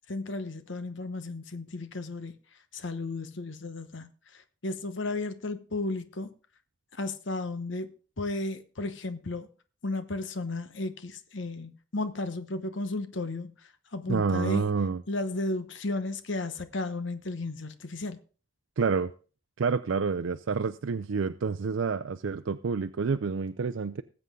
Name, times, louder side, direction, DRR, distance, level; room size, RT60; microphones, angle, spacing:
voice 1, 0.1-2.4 2.7-6.3 6.9-9.5 9.8-14.7 15.1-18.2, left 2 dB, 70° left, 1.1 m, -34 dB
voice 2, 14.1-15.0 18.8-19.1 19.6-24.0, right 5 dB, 80° right, 0.5 m, -28 dB
19.0 x 8.0 x 3.7 m
head